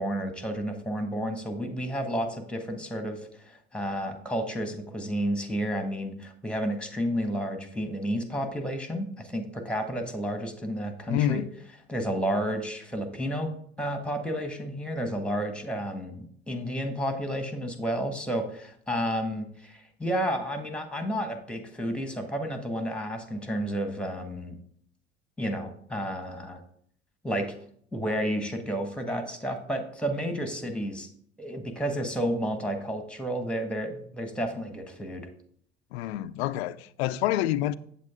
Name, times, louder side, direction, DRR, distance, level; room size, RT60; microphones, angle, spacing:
voice 1, 0.0-11.4 11.9-24.6 25.4-26.6 27.2-27.5 27.9-31.1 31.4-35.3, equal, 5° left, 1.5 m, -31 dB
voice 2, 11.1-11.5 35.9-37.7, left 13 dB, 65° left, 0.6 m, -27 dB
8.3 x 7.7 x 3.7 m
figure-of-eight pair, 65°, 35 cm